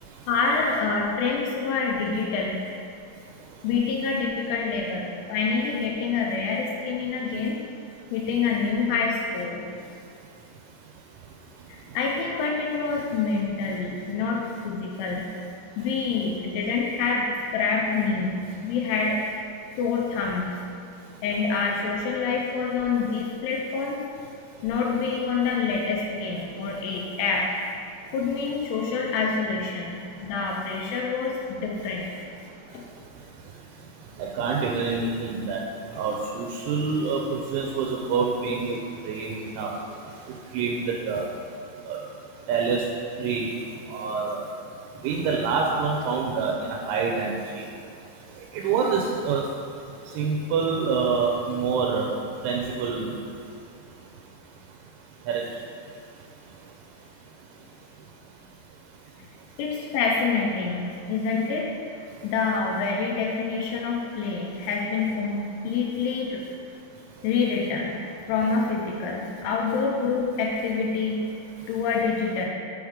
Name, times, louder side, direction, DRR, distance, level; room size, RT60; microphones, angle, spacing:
voice 1, 0.3-2.6 3.6-7.6 8.1-9.6 11.7-15.3 15.8-19.2 19.8-20.6 21.2-24.0 24.6-27.4 28.1-32.1 32.7-32.8 59.6-66.4 67.2-68.0 68.3-72.5, left 4 dB, 90° left, -2 dB, 3.1 m, -27 dB
voice 2, 34.4-35.6 35.9-38.8 39.0-39.7 40.5-41.2 41.9-42.0 42.5-42.8 43.2-43.5 43.9-44.4 45.0-47.6 48.5-49.4 50.2-52.1 52.4-53.1 55.3-55.4, right 5 dB, 90° right, 0 dB, 3.0 m, -26 dB
7.2 x 3.6 x 4.8 m, 2.5 s
omnidirectional pair, 5.4 m